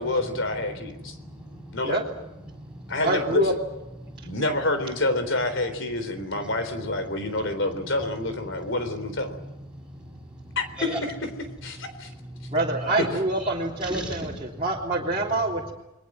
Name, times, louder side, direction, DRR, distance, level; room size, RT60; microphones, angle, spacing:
voice 1, 0.0-1.2 1.7-2.0 2.9-3.5 4.2-9.4 10.6-11.1 11.6-12.1 13.0-13.1, left 2 dB, 60° left, 9 dB, 3.8 m, -27 dB
voice 2, 0.7-1.9 2.4-3.0 4.0-4.4 9.2-11.0 12.0-13.0 13.4-13.5 13.8-14.6, right 1 dB, 5° right, -1 dB, 6.5 m, -38 dB
voice 3, 3.0-3.5 12.5-15.7, right 2 dB, 25° right, -6 dB, 3.2 m, -26 dB
30.0 x 22.0 x 6.3 m, 0.95 s
head